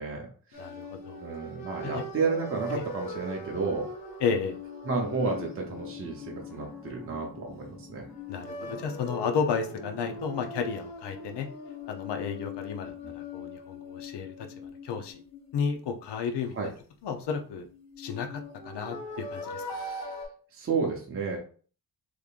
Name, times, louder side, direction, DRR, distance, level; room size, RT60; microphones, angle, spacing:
voice 1, 0.0-0.6 1.2-3.9 4.8-8.0 13.0-13.1 16.5-16.7 19.7-20.2 20.5-21.4, right 4 dB, 35° right, -1 dB, 0.7 m, -32 dB
sound 1, 0.5-7.6 8.1-15.9 17.6-20.3, left 2 dB, 60° left, 1.7 m, -41 dB
voice 2, 0.6-1.2 1.8-2.0 2.7-2.8 4.2-4.6 8.3-11.5 11.9-15.2 15.5-16.5 17.0-17.6 18.0-19.8, left 6 dB, 80° left, 5 dB, 0.7 m, -32 dB
sound 2, 5.2-10.5, left 3 dB, ahead, 1.2 m, -48 dB
3.5 x 3.3 x 2.4 m, 0.42 s
wide cardioid pair, 160°, 41 cm